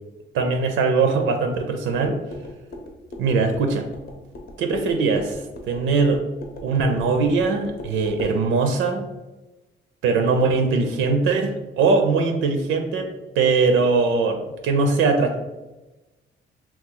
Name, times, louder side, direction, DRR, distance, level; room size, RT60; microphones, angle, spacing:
voice 1, 0.3-2.2 3.2-3.9 4.6-6.2 6.6-9.1 10.0-15.4, right 4 dB, 85° right, 4 dB, 0.5 m, -21 dB
sound 1, 1.9-8.4, left 1 dB, 50° left, 0.7 m, -39 dB
3.0 x 2.3 x 3.7 m, 1.1 s
cardioid pair, 90°, 20 cm